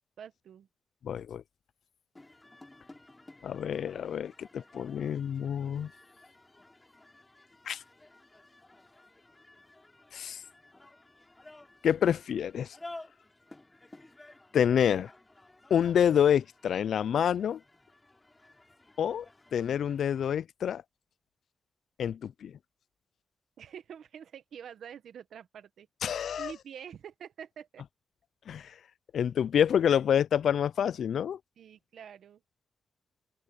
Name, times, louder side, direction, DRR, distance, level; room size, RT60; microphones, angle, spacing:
voice 1, 0.2-0.7 23.6-25.9 26.3-27.8 31.6-32.4, right 8 dB, 90° right, 1.0 m, -46 dB
voice 2, 1.0-1.4 3.4-5.9 7.7-7.8 10.1-10.4 11.8-12.8 14.5-15.1 15.7-17.6 19.0-19.3 19.5-20.8 22.0-22.6 26.0-26.5 28.5-28.7 29.1-31.4, left 8 dB, 85° left, 0.3 m, -27 dB
sound 1, 2.2-20.3, left 2 dB, 15° left, 4.2 m, -54 dB
open air
wide cardioid pair, 125°, 0 cm